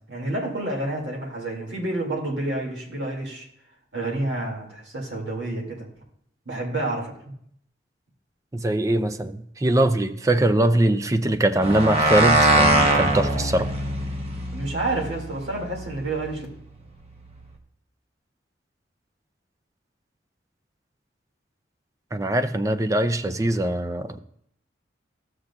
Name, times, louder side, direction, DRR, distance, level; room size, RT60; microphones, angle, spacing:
voice 1, 0.1-3.5 3.9-5.9 6.5-7.1 14.5-16.5, right 2 dB, 65° right, 0 dB, 2.3 m, -29 dB
voice 2, 8.5-13.7 22.1-24.2, right 1 dB, 15° right, 8 dB, 0.4 m, -22 dB
sound 1, 11.6-16.3, right 2 dB, 35° right, 1.0 m, -22 dB
13.0 x 7.7 x 2.4 m, 0.68 s
head